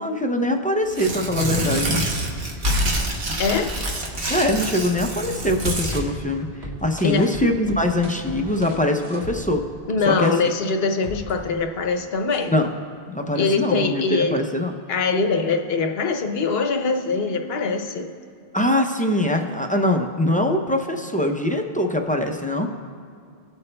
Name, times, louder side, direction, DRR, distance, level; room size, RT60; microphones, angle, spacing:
voice 1, 0.0-2.0 4.3-9.6 10.1-10.4 12.5-12.7 13.1-14.8 18.5-22.7, left 1 dB, 15° left, 3 dB, 0.3 m, -23 dB
Tearing, 0.9-6.0, right 1 dB, 65° right, 1.2 m, -26 dB
sound 1, 1.4-6.0 6.6-9.7 10.2-10.5 11.0-12.6, equal, 80° right, 1.7 m, -40 dB
voice 2, 3.4-3.7 7.0-7.3 9.9-12.5 13.3-14.4 14.9-18.1, left 4 dB, 70° left, 5 dB, 0.9 m, -23 dB
18.5 x 8.1 x 2.2 m, 2.4 s
omnidirectional pair, 1.1 m